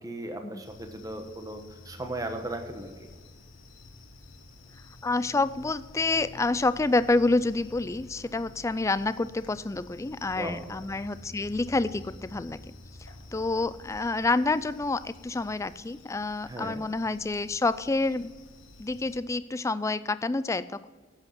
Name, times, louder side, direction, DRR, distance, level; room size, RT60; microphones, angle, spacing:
voice 1, 0.0-3.1 10.3-10.6 16.4-16.8, right 1 dB, 20° right, 5 dB, 1.2 m, -37 dB
sound 1, 0.6-19.2, left 2 dB, 85° left, 1.4 m, -50 dB
voice 2, 5.0-12.6 13.3-18.3 18.8-20.9, left 3 dB, 15° left, 15 dB, 0.3 m, -28 dB
11.0 x 8.1 x 6.0 m, 1.4 s
head